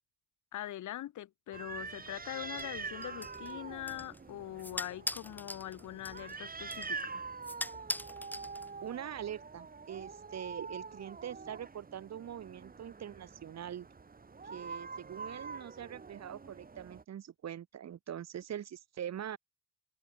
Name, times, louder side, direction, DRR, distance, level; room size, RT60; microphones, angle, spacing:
voice 1, 0.5-7.2, left 13 dB, 75° left, 3.6 m, -42 dB
sound 1, 1.5-17.0, right 4 dB, 30° right, 3.3 m, -45 dB
sound 2, 2.6-9.0, left 1 dB, 5° left, 2.8 m, -43 dB
voice 2, 8.8-13.9 14.5-19.4, right 10 dB, 60° right, 2.4 m, -43 dB
cardioid pair, 90°, 30 cm